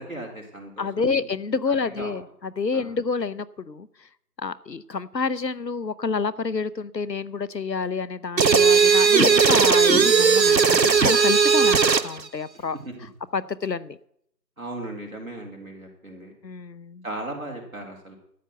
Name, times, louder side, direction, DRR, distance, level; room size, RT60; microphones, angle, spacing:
voice 1, 0.0-1.3 1.7-2.2 2.7-2.9 12.5-12.9 14.6-16.3 17.0-18.2, right 1 dB, 55° right, 0 dB, 4.3 m, -37 dB
voice 2, 0.8-3.9 4.4-12.8 13.3-14.0 16.4-17.0, left 4 dB, 75° left, 18 dB, 0.8 m, -28 dB
sound 1, 8.4-12.1, right 6 dB, 80° right, 0.9 m, -17 dB
12.5 x 7.1 x 7.9 m, 0.71 s
figure-of-eight pair, 175°, 50 cm